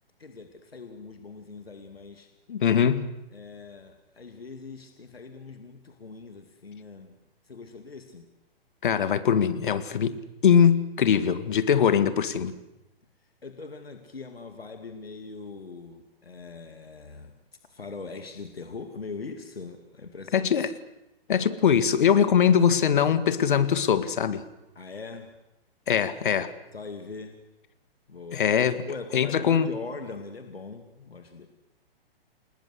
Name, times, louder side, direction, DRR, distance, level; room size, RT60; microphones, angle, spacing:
voice 1, 0.2-2.3 3.3-7.2 7.5-8.2 13.4-17.4 17.7-20.5 24.7-25.3 26.7-27.4 28.1-28.4 28.8-31.5, left 4 dB, 75° left, 6 dB, 2.5 m, -41 dB
voice 2, 2.5-3.1 8.8-12.6 20.3-20.7 21.3-24.4 25.9-26.5 28.3-28.8 29.1-29.7, left 8 dB, 55° left, 12 dB, 1.9 m, -22 dB
29.0 x 19.5 x 8.1 m, 0.93 s
figure-of-eight pair, 120°, 30 cm